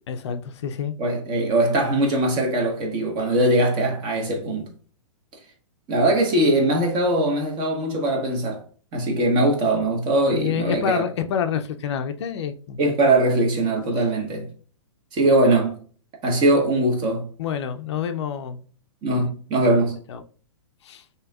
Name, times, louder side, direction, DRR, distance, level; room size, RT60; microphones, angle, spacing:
voice 1, 0.1-0.9 10.3-12.8 17.4-18.6 20.1-20.2 20.8-21.0, left 8 dB, 55° left, 0.5 m, -27 dB
voice 2, 1.0-4.7 5.9-8.6 8.9-11.0 12.8-14.5 15.1-15.8 16.2-17.3 19.0-20.0, right 1 dB, 25° right, 1.2 m, -21 dB
6.0 x 2.8 x 2.4 m
hypercardioid pair, 150°, 17 cm